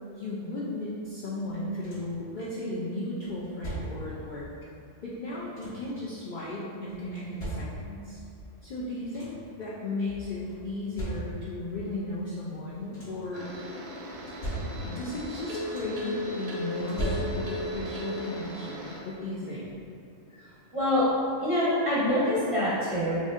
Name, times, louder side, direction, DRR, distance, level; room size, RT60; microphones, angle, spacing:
voice 1, 0.2-4.4 5.0-8.2 8.6-13.5 14.8-19.7, left 2 dB, 75° left, -7 dB, 0.4 m, -35 dB
sound 1, 1.5-2.3 3.2-4.2 5.1-6.0 6.9-8.1 8.7-8.8 9.0-9.6 10.5-11.6 12.6-13.4 14.1-15.1 15.4-16.1 16.8-17.8 19.1-19.2 19.7-19.9, right 1 dB, 55° left, 1.3 m, -38 dB
sound 2, 13.3-19.0, equal, 80° right, 1.1 m, -36 dB
voice 2, 20.7-21.0 21.4-23.2, left 1 dB, 35° right, -9 dB, 0.6 m, -25 dB
4.8 x 2.6 x 2.4 m, 2.4 s
omnidirectional pair, 1.4 m